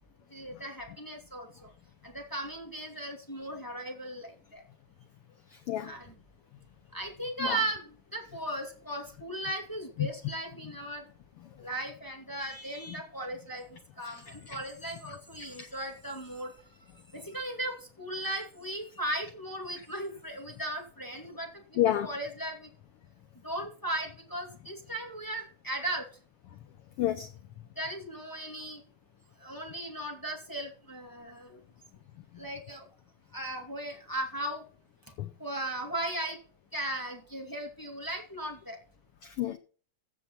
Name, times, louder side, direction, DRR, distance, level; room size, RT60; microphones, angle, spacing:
voice 1, 0.3-1.7 2.0-4.6 5.8-6.1 6.9-11.0 11.6-13.7 14.0-16.5 17.1-22.7 23.4-26.0 27.8-28.8 29.4-31.6 32.4-32.9 33.3-34.6 35.4-36.4 36.7-38.8, right 1 dB, 5° left, 2.0 m, -37 dB
voice 2, 21.8-22.1 27.0-27.3 35.2-35.3 39.2-39.6, left 12 dB, 90° left, 1.2 m, -29 dB
15.5 x 7.0 x 4.2 m
omnidirectional pair, 3.5 m